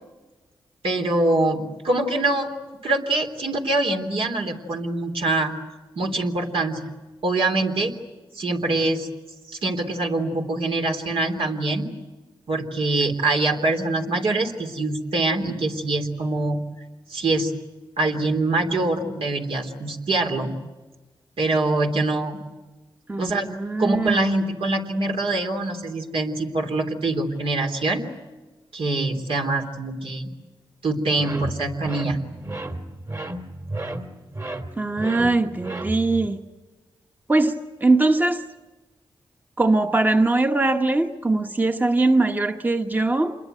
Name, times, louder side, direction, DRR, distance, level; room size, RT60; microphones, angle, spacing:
voice 1, 0.8-2.5 2.8-5.5 6.0-6.8 7.2-7.9 8.3-9.1 9.5-11.9 12.5-16.6 17.1-17.5 18.0-20.5 21.4-22.4 23.2-23.4 23.8-28.0 28.7-30.3 30.8-32.2, right 2 dB, 75° right, 2 dB, 3.5 m, -24 dB
voice 2, 23.1-24.2 34.8-36.4 37.3-38.4 39.6-43.4, right 2 dB, 20° right, 5 dB, 1.2 m, -21 dB
sound 1, 31.1-36.3, right 1 dB, 35° right, 2.5 m, -33 dB
27.5 x 22.0 x 9.3 m, 1.2 s
cardioid pair, 75°, 10 cm